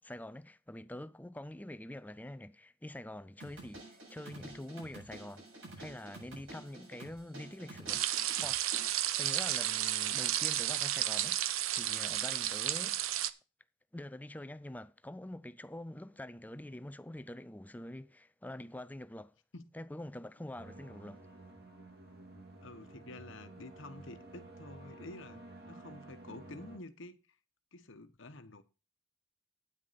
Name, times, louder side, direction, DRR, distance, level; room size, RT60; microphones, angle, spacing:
voice 1, 0.0-5.5 5.8-8.6 9.2-11.4 11.7-13.0 13.9-19.3 19.7-21.2, left 1 dB, 10° left, 0.5 m, -45 dB
sound 1, 3.4-8.9, right 2 dB, 70° right, 7.8 m, -50 dB
sound 2, 7.9-13.3, right 12 dB, 85° right, 0.7 m, -32 dB
sound 3, 20.6-26.8, right 2 dB, 50° right, 2.6 m, -52 dB
voice 2, 22.6-27.2 27.7-28.6, left 2 dB, 65° left, 1.2 m, -49 dB
9.5 x 9.5 x 4.2 m
head